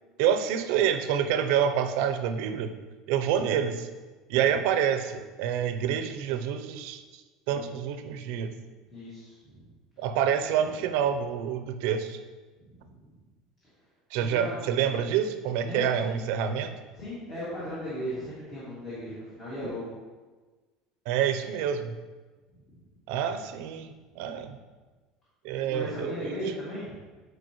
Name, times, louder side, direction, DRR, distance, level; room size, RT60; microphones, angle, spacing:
voice 1, 0.2-2.7 3.1-3.9 4.3-7.2 7.5-8.5 10.0-12.2 14.1-16.7 21.1-21.9 23.1-24.6 25.4-26.4, right 8 dB, 70° right, 8 dB, 0.6 m, -27 dB
voice 2, 8.9-9.7 12.6-12.9 14.2-14.6 14.9-15.0 15.6-16.2 16.9-20.0 22.5-22.9 25.7-27.0, equal, 30° left, -9 dB, 2.2 m, -37 dB
10.0 x 4.8 x 3.1 m, 1.3 s
cardioid pair, 155°, 0 cm